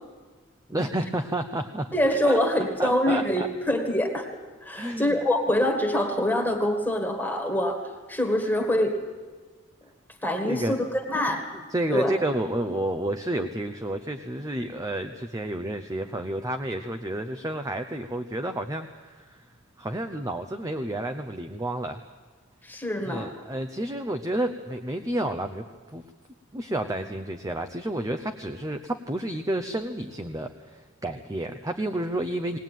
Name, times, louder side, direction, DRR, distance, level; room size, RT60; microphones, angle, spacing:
voice 1, 0.7-1.9 2.2-2.4 2.8-3.5 4.7-5.2 10.4-10.7 11.7-19.4 19.8-22.0 23.1-25.6 25.9-26.0 26.5-32.6, right 1 dB, 15° right, 6 dB, 0.7 m, -30 dB
voice 2, 1.9-4.3 4.6-7.8 8.1-9.0 10.2-11.5 11.9-12.1 22.6-23.3, left 1 dB, 10° left, 3 dB, 1.8 m, -25 dB
19.5 x 19.5 x 9.2 m, 1.4 s
head